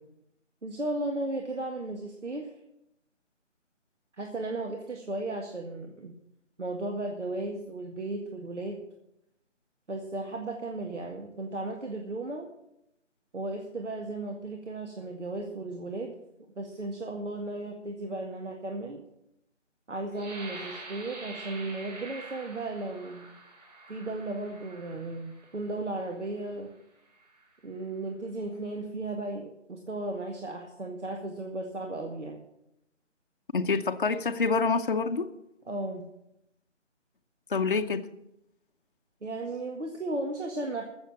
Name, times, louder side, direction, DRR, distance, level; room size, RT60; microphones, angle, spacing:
voice 1, 0.6-2.5 4.2-6.1 6.6-8.8 9.9-12.5 13.3-16.1 16.6-19.0 19.9-23.3 23.9-26.7 27.6-32.5 35.7-36.1 39.2-40.8, right 2 dB, 70° right, 3 dB, 2.0 m, -35 dB
sound 1, 20.1-25.8 26.4-26.6 27.1-27.5, right 2 dB, 35° right, 4.8 m, -46 dB
voice 2, 33.5-35.3 37.5-38.0, left 4 dB, 45° left, 6 dB, 0.9 m, -26 dB
15.5 x 7.1 x 7.3 m, 0.82 s
figure-of-eight pair, 160°, 37 cm